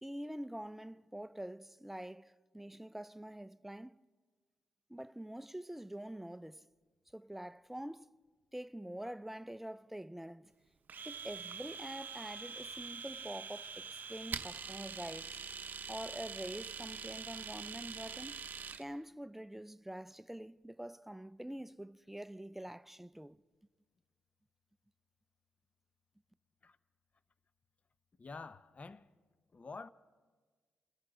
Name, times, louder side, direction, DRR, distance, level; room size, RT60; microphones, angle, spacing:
voice 1, 0.0-4.0 4.9-6.7 7.1-8.1 8.5-10.5 11.0-15.4 15.9-18.5 18.8-23.4, right 1 dB, 5° right, 0.4 m, -46 dB
Domestic sounds home sounds, 10.9-18.8, right 6 dB, 55° right, 0.7 m, -44 dB
voice 2, 28.2-29.1 29.5-29.9, left 4 dB, 35° left, 0.6 m, -48 dB
28.0 x 13.5 x 3.8 m
supercardioid pair, 55°, 4 cm